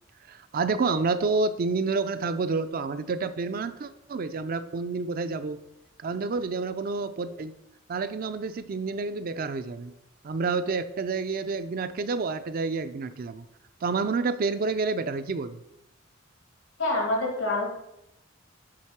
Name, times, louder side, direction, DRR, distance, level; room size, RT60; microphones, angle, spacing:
voice 1, 0.3-5.6 6.0-7.5 7.9-9.9 10.2-13.4 13.8-15.6, right 4 dB, 45° right, 11 dB, 0.4 m, -29 dB
voice 2, 16.8-17.7, left 2 dB, 90° left, -1 dB, 2.5 m, -26 dB
7.6 x 3.6 x 5.8 m, 0.85 s
head